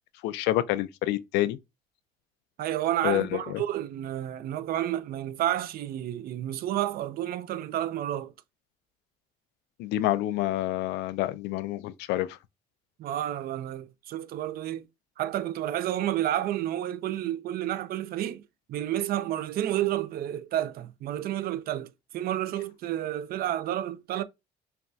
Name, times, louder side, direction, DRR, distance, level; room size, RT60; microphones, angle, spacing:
voice 1, 0.2-1.6 3.0-3.6 9.8-12.4, left 15 dB, 90° left, 0.4 m, -28 dB
voice 2, 2.6-8.3 13.0-14.9 15.2-18.4 18.7-24.2, right 12 dB, 60° right, 0.5 m, -30 dB
5.7 x 2.3 x 2.6 m
cardioid pair, 110°, 17 cm